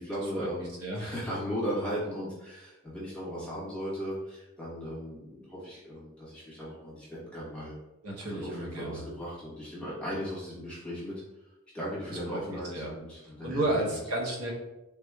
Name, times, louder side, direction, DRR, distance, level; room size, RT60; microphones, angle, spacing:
voice 1, 0.0-7.7 8.3-11.1 11.7-13.7, equal, 5° left, -8 dB, 1.0 m, -37 dB
voice 2, 0.8-1.1 8.0-9.0 12.1-13.0 13.2-14.5, right 1 dB, 85° right, -2 dB, 0.8 m, -33 dB
3.4 x 3.0 x 2.3 m, 0.98 s
head